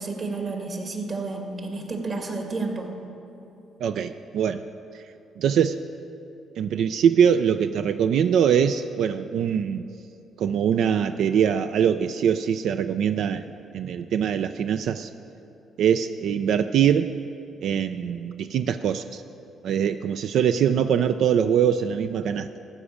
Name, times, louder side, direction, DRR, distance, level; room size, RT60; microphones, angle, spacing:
voice 1, 0.0-2.9, right 3 dB, 45° right, 2 dB, 2.0 m, -31 dB
voice 2, 3.8-4.6 4.9-5.0 5.4-5.8 6.6-9.9 10.4-15.1 15.8-17.1 17.6-19.2 19.6-22.6, right 8 dB, 75° right, 9 dB, 0.4 m, -23 dB
14.5 x 5.1 x 8.5 m, 2.9 s
cardioid pair, 90°, 0 cm